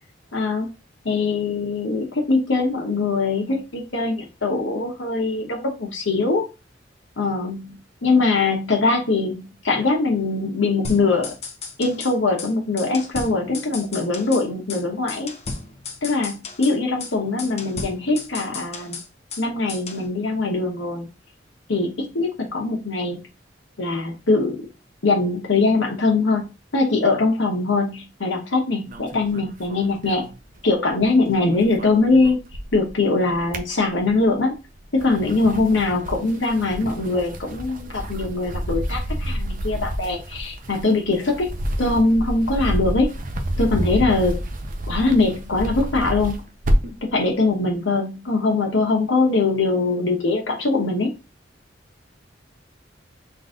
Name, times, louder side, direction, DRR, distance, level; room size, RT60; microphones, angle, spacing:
voice 1, 0.3-0.7 1.0-6.5 7.2-7.8 8.0-11.3 11.8-15.3 16.0-19.0 19.4-21.1 21.7-23.2 23.8-24.7 25.0-30.3 30.6-32.4 32.7-34.6 34.9-41.5 41.8-43.1 43.6-44.4 44.9-46.4 47.0-51.1, left 3 dB, 85° left, 1 dB, 1.0 m, -22 dB
sound 1, 10.8-12.1 12.4-12.5 12.8-14.4 14.7-14.8 15.1-16.7 17.0-17.1 17.4-19.4 19.7-20.0, left 4 dB, 35° left, 0.8 m, -34 dB
sound 2, 28.9-31.0 31.3-32.9 33.3-34.3 34.8-47.1, equal, 45° right, 0.6 m, -29 dB
3.9 x 2.6 x 3.7 m, 0.28 s
head